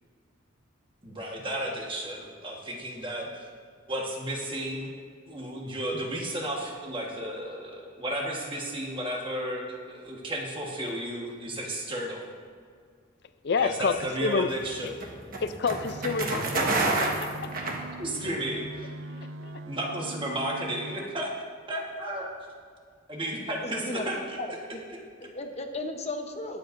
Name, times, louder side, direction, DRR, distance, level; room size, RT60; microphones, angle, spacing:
voice 1, 1.0-3.5 3.9-4.9 5.2-12.3 13.6-14.9 18.0-18.9 19.6-21.3 21.7-22.3 23.1-24.4 24.9-25.3, right 1 dB, 25° right, -1 dB, 1.3 m, -33 dB
voice 2, 13.4-14.5 15.4-17.5 19.1-19.6, left 5 dB, 55° left, 11 dB, 0.4 m, -29 dB
sound 1, 13.9-18.4, right 2 dB, 45° right, 1.3 m, -29 dB
sound 2, 15.8-21.0, right 1 dB, 70° right, 0.4 m, -41 dB
voice 3, 23.6-24.0 24.4-24.8 25.2-26.6, left 2 dB, 30° left, 4 dB, 0.9 m, -35 dB
21.0 x 7.7 x 2.6 m, 2.1 s
head